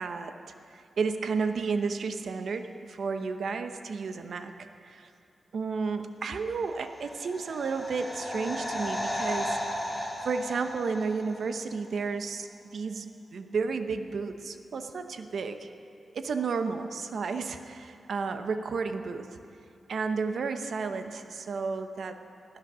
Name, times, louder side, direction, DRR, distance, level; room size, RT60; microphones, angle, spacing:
voice 1, 0.0-4.5 4.8-5.1 5.5-15.7 16.1-19.3 19.9-22.2, right 4 dB, 75° right, 8 dB, 0.8 m, -32 dB
sound 1, 6.7-11.6 11.8-11.9, left 1 dB, 5° left, 4.3 m, -35 dB
15.5 x 12.0 x 6.1 m, 2.5 s
cardioid pair, 75°, 0 cm